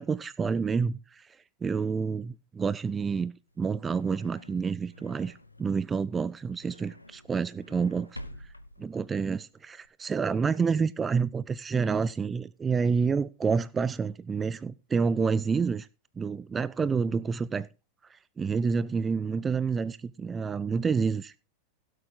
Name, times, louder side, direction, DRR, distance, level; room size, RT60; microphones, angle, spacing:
voice 1, 0.0-1.4 1.6-8.2 8.8-15.9 16.2-17.7 18.1-21.3, right 5 dB, 15° right, 0.5 m, -28 dB
sound 1, 3.5-9.9, left 1 dB, 85° left, 0.9 m, -50 dB
16.5 x 8.1 x 3.8 m
figure-of-eight pair, 90°, 0 cm